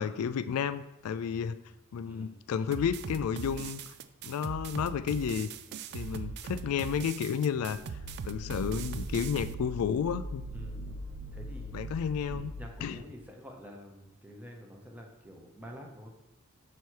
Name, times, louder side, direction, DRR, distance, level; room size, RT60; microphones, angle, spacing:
voice 1, 0.0-1.6 1.9-3.8 4.2-5.5 5.9-7.8 8.2-10.4 11.7-12.5 12.8-13.0, left 7 dB, 85° left, 13 dB, 0.3 m, -31 dB
voice 2, 2.0-2.4 5.9-6.4 10.5-10.8 11.3-11.7 12.6-16.1, equal, 5° right, 1 dB, 0.7 m, -48 dB
sound 1, 2.7-9.5, right 6 dB, 50° right, 0.3 m, -40 dB
sound 2, 7.5-13.0, right 1 dB, 80° right, 0.9 m, -41 dB
6.8 x 3.1 x 4.5 m, 0.93 s
head